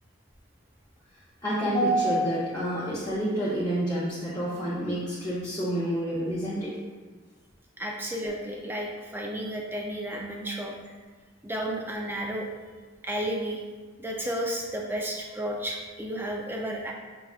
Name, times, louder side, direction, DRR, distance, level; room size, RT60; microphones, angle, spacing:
voice 1, 1.4-6.8 8.2-8.3, right 1 dB, 20° left, -10 dB, 0.6 m, -28 dB
voice 2, 7.8-10.7 11.4-12.5 13.0-13.6 14.0-16.9, right 1 dB, 10° right, 0 dB, 0.3 m, -32 dB
5.5 x 2.4 x 2.4 m, 1.4 s
head